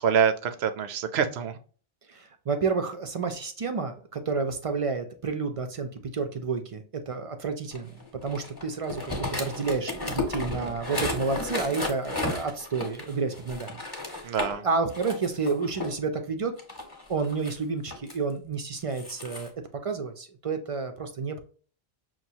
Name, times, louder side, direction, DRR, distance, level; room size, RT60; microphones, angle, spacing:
voice 1, 0.0-1.6 14.2-14.6, right 7 dB, 80° right, 10 dB, 0.9 m, -25 dB
voice 2, 2.1-7.9 8.2-13.8 14.0-14.3 14.6-16.5 17.1-19.5 19.8-21.4, right 4 dB, 45° right, 7 dB, 0.4 m, -30 dB
sound 1, 7.7-14.6 14.9-16.0 16.6-18.1 18.8-19.5, left 2 dB, 25° left, 0.9 m, -33 dB
5.6 x 2.6 x 2.7 m, 0.41 s
omnidirectional pair, 1.1 m